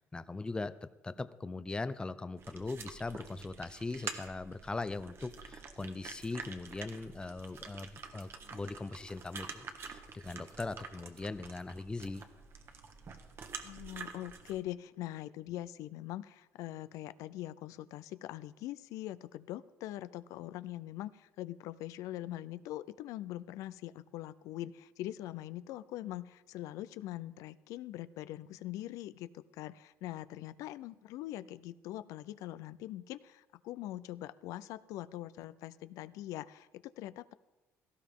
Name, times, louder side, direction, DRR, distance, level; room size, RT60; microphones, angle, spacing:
voice 1, 0.0-12.2, left 3 dB, 15° left, 14 dB, 0.6 m, -40 dB
sound 1, 2.4-14.6, right 5 dB, 45° right, 1.4 m, -47 dB
voice 2, 13.6-37.3, left 14 dB, 90° left, 16 dB, 0.4 m, -43 dB
17.0 x 14.0 x 3.7 m, 1.0 s
cardioid pair, 115°, 6 cm